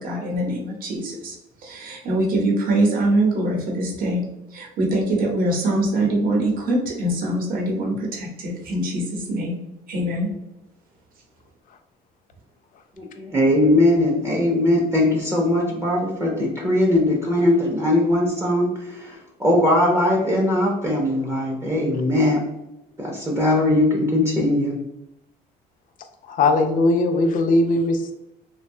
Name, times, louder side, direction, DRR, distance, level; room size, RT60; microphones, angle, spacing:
voice 1, 0.0-1.3 1.6-4.2 4.5-9.6 9.9-10.3, right 1 dB, 55° right, -1 dB, 0.8 m, -23 dB
voice 2, 13.0-22.4 23.0-24.8, left 1 dB, 15° right, -2 dB, 0.5 m, -20 dB
voice 3, 26.3-28.1, left 2 dB, 55° left, 6 dB, 0.4 m, -19 dB
2.6 x 2.2 x 2.6 m, 0.88 s
cardioid pair, 110°, 17 cm